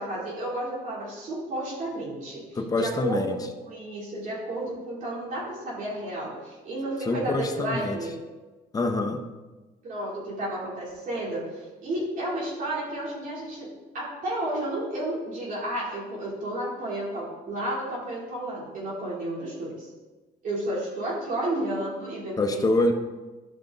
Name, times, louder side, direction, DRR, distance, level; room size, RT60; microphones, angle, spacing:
voice 1, 0.0-3.4 3.7-8.1 9.8-13.7 13.9-19.9 20.4-22.6, right 1 dB, 50° right, -6 dB, 3.1 m, -32 dB
voice 2, 2.6-3.4 7.1-8.0 8.7-9.2 22.4-22.9, left 2 dB, 20° left, 5 dB, 0.9 m, -25 dB
12.0 x 5.2 x 3.9 m, 1.2 s
cardioid pair, 110°, 17 cm